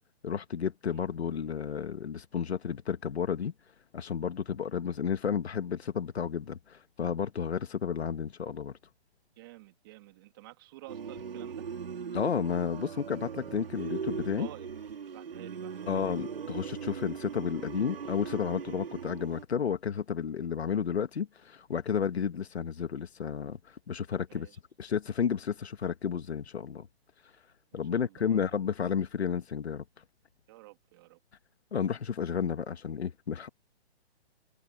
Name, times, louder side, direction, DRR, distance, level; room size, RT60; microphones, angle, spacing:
voice 1, 0.2-3.5 3.9-8.7 12.1-14.5 15.9-23.6 23.9-24.5 24.8-26.9 27.7-29.8 31.7-33.5, left 7 dB, 75° left, 1.8 m, -32 dB
voice 2, 9.4-11.6 14.4-14.7 15.1-16.1 24.3-24.6 27.9-28.4 30.5-31.2, right 19 dB, 20° right, 3.0 m, -50 dB
sound 1, 10.9-19.4, right 6 dB, 60° right, 3.9 m, -39 dB
hypercardioid pair, 175°, 32 cm